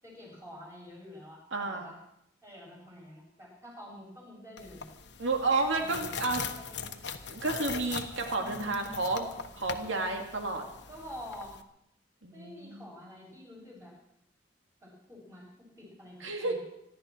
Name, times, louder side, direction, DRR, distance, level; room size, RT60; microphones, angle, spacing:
voice 1, 0.0-2.0 2.4-4.9 5.7-7.1 8.3-9.0 10.9-11.6 12.3-13.9 14.8-16.6, left 1 dB, 15° right, -4 dB, 7.5 m, -48 dB
voice 2, 1.5-1.9 5.2-6.4 7.3-9.3 9.6-10.6 12.2-12.9 16.2-16.6, right 3 dB, 80° right, 3 dB, 2.3 m, -31 dB
sound 1, 4.6-11.6, left 6 dB, 60° left, 1.2 m, -41 dB
25.5 x 12.0 x 4.5 m, 0.78 s
head